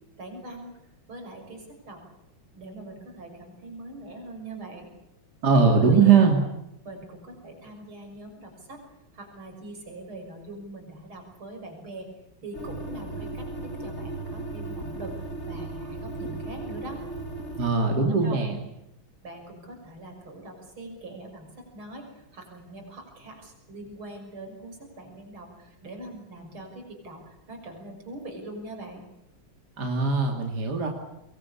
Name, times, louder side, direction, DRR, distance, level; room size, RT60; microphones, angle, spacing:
voice 1, 0.2-0.8 1.1-2.0 2.5-4.9 5.7-6.1 6.8-8.8 9.1-12.1 12.4-17.0 17.9-18.4 19.2-29.1, right 2 dB, 80° right, 3 dB, 7.1 m, -42 dB
voice 2, 5.4-6.4 17.6-18.6 29.8-30.9, right 5 dB, 50° right, 2 dB, 3.2 m, -20 dB
sound 1, 12.5-17.7, right 2 dB, 35° left, 2.8 m, -36 dB
24.5 x 22.0 x 8.6 m, 0.87 s
omnidirectional pair, 2.3 m